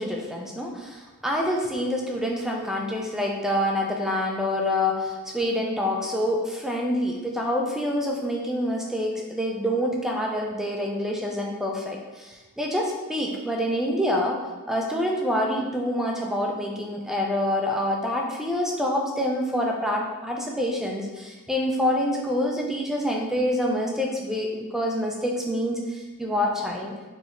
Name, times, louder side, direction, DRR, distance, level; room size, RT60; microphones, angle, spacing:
voice 1, 0.0-14.4 14.7-26.9, left 1 dB, ahead, -1 dB, 0.4 m, -26 dB
4.0 x 2.9 x 2.5 m, 1.2 s
head